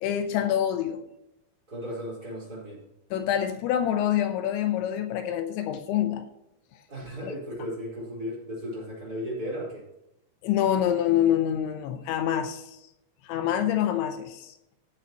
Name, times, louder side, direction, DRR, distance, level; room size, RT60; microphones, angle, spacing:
voice 1, 0.0-1.0 3.1-6.2 7.2-7.3 10.4-12.8 13.2-14.5, left 10 dB, 80° left, 3.1 m, -26 dB
voice 2, 1.7-2.8 6.9-9.8, equal, 20° right, 4.5 m, -35 dB
16.0 x 8.7 x 3.0 m
omnidirectional pair, 5.4 m